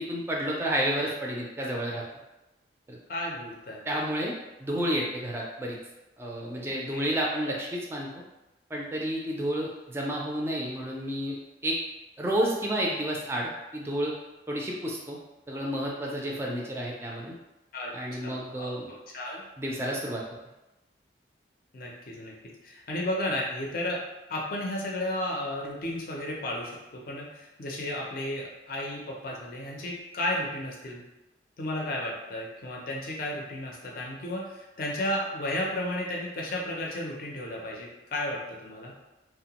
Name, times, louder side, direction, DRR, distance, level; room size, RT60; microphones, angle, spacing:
voice 1, 0.0-2.0 2.9-3.0 3.9-5.8 6.2-8.2 8.7-11.4 11.6-11.8 12.2-14.1 14.5-15.2 15.5-17.4 17.9-18.9 19.6-20.2, equal, 15° right, -3 dB, 0.4 m, -30 dB
voice 2, 3.1-3.8 6.4-7.0 17.7-17.9 18.2-19.4 21.7-22.3 22.6-24.0 24.3-31.0 31.6-38.9, left 1 dB, 50° left, -2 dB, 0.5 m, -33 dB
2.8 x 2.1 x 2.8 m, 1.0 s
head